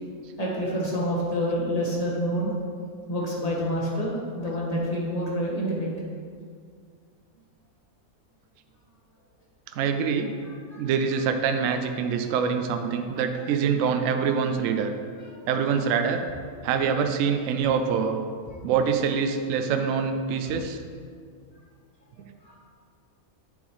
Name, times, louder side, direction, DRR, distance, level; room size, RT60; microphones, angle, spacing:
voice 1, 0.4-2.5 3.1-5.9 10.7-10.8 13.3-13.5 22.4-22.6, equal, 25° left, -5 dB, 1.5 m, -27 dB
voice 2, 9.7-10.3 10.8-14.9 15.5-16.2 16.6-18.2 18.6-20.8, right 6 dB, 70° right, 6 dB, 0.9 m, -25 dB
8.0 x 7.0 x 3.1 m, 2.1 s
omnidirectional pair, 1.5 m